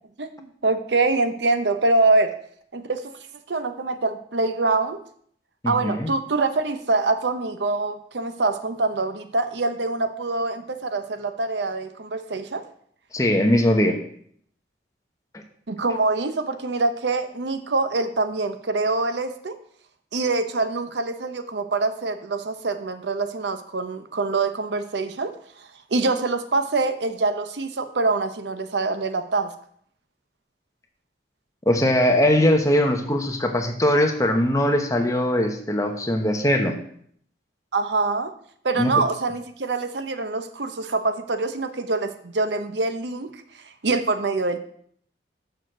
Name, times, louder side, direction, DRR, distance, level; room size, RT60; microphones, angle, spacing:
voice 1, 0.2-2.3 2.7-3.1 3.5-5.0 5.7-12.6 15.7-19.5 20.1-25.3 25.6-29.5 37.7-38.3 38.6-43.3 43.8-44.6, right 3 dB, 75° right, 10 dB, 0.8 m, -24 dB
voice 2, 5.6-6.1 13.1-14.0 31.7-36.8 38.8-38.9, left 1 dB, 20° left, 3 dB, 1.0 m, -20 dB
6.5 x 6.4 x 6.5 m, 0.63 s
head